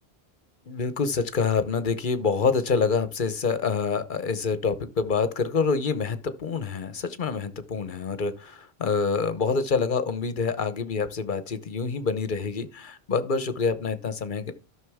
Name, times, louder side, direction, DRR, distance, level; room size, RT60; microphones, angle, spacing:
voice 1, 0.7-14.5, left 5 dB, 55° left, 1.1 m, -26 dB
13.0 x 6.3 x 3.5 m
omnidirectional pair, 1.1 m